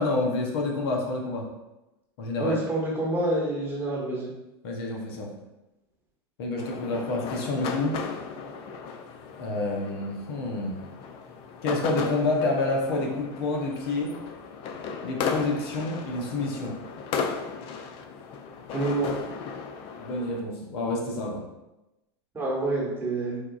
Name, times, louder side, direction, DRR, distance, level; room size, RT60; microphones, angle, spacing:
voice 1, 0.0-1.5 2.2-2.6 4.6-5.3 6.4-7.9 9.4-10.8 11.6-14.2 15.0-16.7 20.0-21.5, left 2 dB, 70° left, 0 dB, 0.7 m, -28 dB
voice 2, 2.4-4.3 18.7-19.1 22.3-23.4, right 2 dB, 15° right, -5 dB, 1.2 m, -27 dB
sound 1, 6.6-20.4, left 5 dB, 45° left, 0.4 m, -36 dB
4.5 x 2.3 x 2.3 m, 0.96 s
hypercardioid pair, 105°, 13 cm